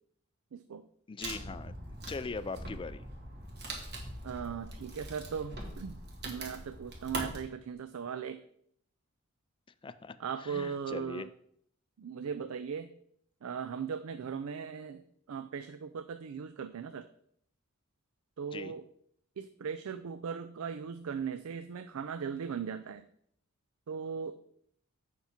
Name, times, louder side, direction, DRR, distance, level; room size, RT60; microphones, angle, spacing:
voice 1, 0.5-0.9 4.2-8.4 10.2-11.3 12.0-12.9 13.4-15.0 15.3-17.1 18.4-18.8 19.4-23.0 23.9-24.4, right 6 dB, 80° right, 11 dB, 0.4 m, -38 dB
voice 2, 1.1-1.7 2.1-3.1 9.8-11.3 18.5-18.7, left 4 dB, 25° left, 14 dB, 0.3 m, -40 dB
Wood, 1.2-7.4, right 1 dB, 50° right, 1.8 m, -42 dB
8.0 x 5.9 x 4.4 m, 0.68 s
head